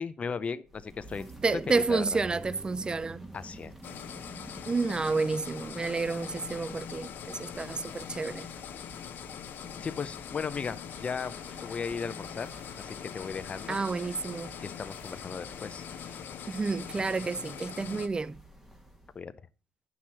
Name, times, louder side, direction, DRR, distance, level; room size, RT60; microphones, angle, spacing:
voice 1, 0.0-1.3 1.8-2.2 3.3-3.7 9.8-12.5 12.8-13.8 14.6-15.9 19.1-19.5, left 5 dB, 35° left, 0.6 m, -36 dB
sound 1, 0.6-19.2, right 1 dB, 5° right, 1.6 m, -50 dB
voice 2, 1.4-3.3 4.7-8.5 13.7-14.5 16.5-18.4, right 4 dB, 25° right, 0.4 m, -30 dB
sound 2, 3.8-18.1, left 8 dB, 60° left, 0.9 m, -42 dB
sound 3, 10.9-16.2, right 3 dB, 40° right, 2.0 m, -58 dB
9.4 x 6.0 x 4.2 m
supercardioid pair, 80°, 4 cm